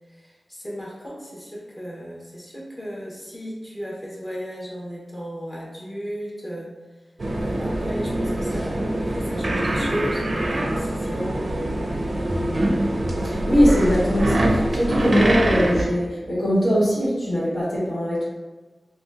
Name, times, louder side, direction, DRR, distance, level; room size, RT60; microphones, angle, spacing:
voice 1, 0.1-6.8 7.3-11.8 13.1-13.6, equal, 25° left, -5 dB, 1.0 m, -35 dB
sound 1, 7.2-15.8, right 1 dB, 50° right, 0.4 m, -24 dB
voice 2, 13.2-18.3, equal, 75° left, -10 dB, 1.4 m, -21 dB
2.7 x 2.3 x 3.3 m, 1.3 s
wide cardioid pair, 80°, 0 cm